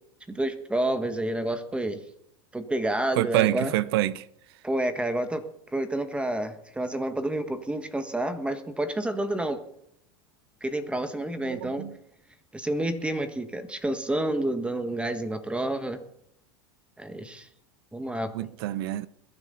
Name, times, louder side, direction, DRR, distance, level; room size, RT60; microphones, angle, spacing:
voice 1, 0.3-2.0 2.5-3.7 4.6-5.4 5.7-9.6 10.6-11.9 12.5-16.0 17.0-17.5 17.9-18.3, right 1 dB, 10° right, 1.4 m, -29 dB
voice 2, 3.1-4.3 11.4-12.0 18.3-19.1, right 15 dB, 70° right, 0.8 m, -27 dB
21.5 x 10.5 x 4.0 m
supercardioid pair, 110°, 13 cm